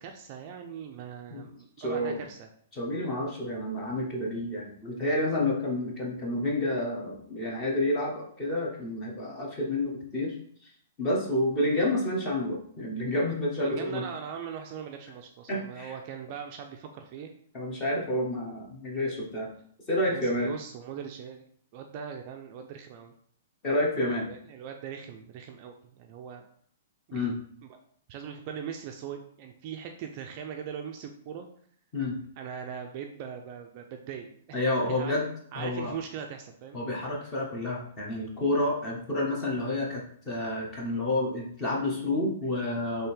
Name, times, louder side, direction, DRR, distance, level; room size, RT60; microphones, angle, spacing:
voice 1, 0.0-2.5 13.5-17.3 20.1-21.4 21.7-23.1 24.3-26.5 27.1-27.3 27.6-27.7 28.1-31.5 32.4-34.6 34.9-35.1 35.5-36.8, right 7 dB, 30° right, 4 dB, 0.3 m, -40 dB
voice 2, 1.8-2.2 2.7-10.4 11.0-14.0 15.5-15.9 17.5-19.5 19.9-20.5 23.6-24.3 27.1-27.3 31.9-32.2 34.5-35.3 35.5-35.9 36.7-43.1, left 1 dB, 15° left, -1 dB, 0.9 m, -29 dB
3.5 x 3.2 x 4.4 m, 0.62 s
hypercardioid pair, 175°, 0 cm